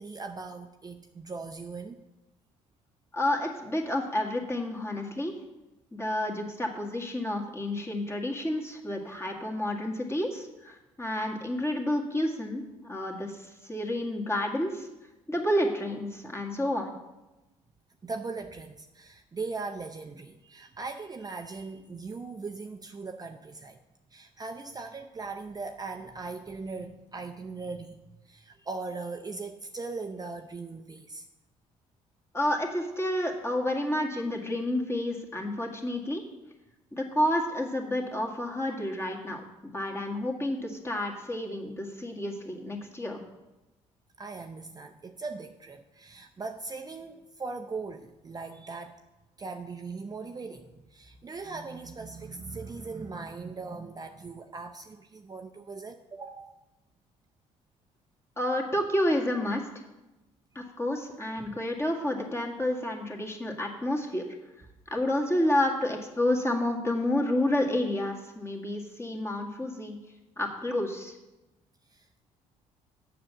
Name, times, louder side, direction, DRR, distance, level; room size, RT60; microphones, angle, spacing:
voice 1, 0.0-2.1 18.0-23.8 24.1-31.3 44.2-49.0 49.4-56.6 61.4-61.6 71.9-72.2, right 4 dB, 25° right, 4 dB, 0.6 m, -39 dB
voice 2, 3.1-5.3 5.9-14.9 15.3-16.9 32.3-36.2 36.9-43.2 58.4-59.6 60.6-64.2 64.9-69.9 70.4-71.2, left 1 dB, 15° left, 0 dB, 1.9 m, -30 dB
7.5 x 6.0 x 6.9 m, 1.0 s
supercardioid pair, 60°, 15 cm